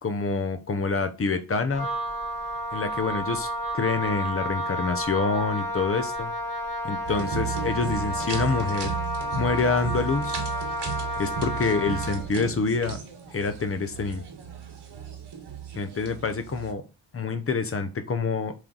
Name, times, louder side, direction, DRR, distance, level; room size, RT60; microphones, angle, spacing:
voice 1, 0.0-1.9 2.7-3.5 3.7-6.3 6.8-9.0 9.4-10.4 11.2-13.0 13.3-14.2 15.8-16.8 17.1-18.5, left 4 dB, 30° left, 9 dB, 0.7 m, -27 dB
Wind instrument woodwind instrument, 1.7-12.3, equal, 45° right, 3.7 m, -31 dB
sound 1, 7.0-16.7, right 8 dB, 60° right, 1.5 m, -35 dB
7.4 x 3.2 x 3.9 m, 0.31 s
wide cardioid pair, 150°, 46 cm